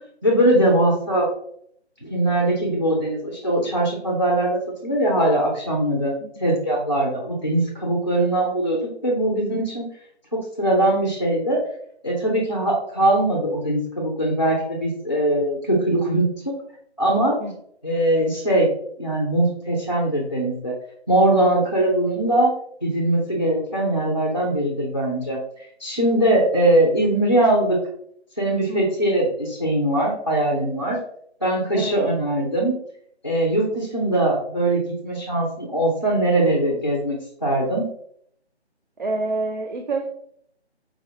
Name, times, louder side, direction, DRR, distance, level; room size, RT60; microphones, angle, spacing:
voice 1, 0.2-1.3 2.0-6.1 6.4-9.9 10.3-11.6 12.0-16.5 17.0-17.4 17.8-18.7 19.0-20.7 21.1-22.5 22.8-25.4 25.8-27.8 28.4-31.0 31.4-32.8 33.2-37.9, right 1 dB, 25° left, -1 dB, 0.5 m, -21 dB
voice 2, 39.0-40.1, right 2 dB, 45° right, 3 dB, 0.5 m, -27 dB
4.7 x 3.4 x 2.7 m, 0.66 s
figure-of-eight pair, 155°, 34 cm